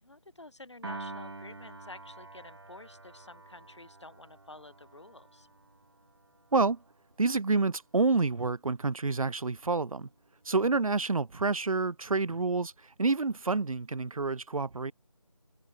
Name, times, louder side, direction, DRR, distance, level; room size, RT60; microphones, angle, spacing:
voice 1, 0.0-5.5, left 2 dB, 55° left, 2.7 m, -50 dB
Piano, 0.8-7.2, right 2 dB, 50° right, 0.5 m, -47 dB
voice 2, 7.2-10.1 10.5-12.7 13.0-14.9, right 3 dB, 85° right, 0.7 m, -28 dB
open air
figure-of-eight pair, 180°, 17 cm